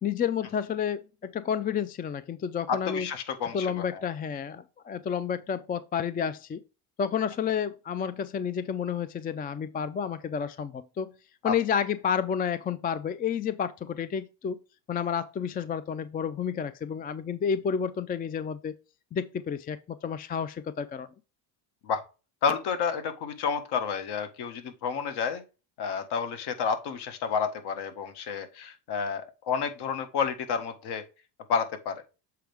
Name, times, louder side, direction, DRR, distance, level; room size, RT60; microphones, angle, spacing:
voice 1, 0.0-3.1 3.5-6.6 7.0-11.1 11.4-14.6 14.9-18.8 19.1-21.1, left 7 dB, 20° left, 0.4 m, -30 dB
voice 2, 2.7-4.0 11.4-11.5 21.8-22.0 22.4-25.4 25.8-31.0 31.5-32.0, left 6 dB, 60° left, 1.6 m, -30 dB
7.6 x 4.6 x 3.4 m
cardioid pair, 110°, 44 cm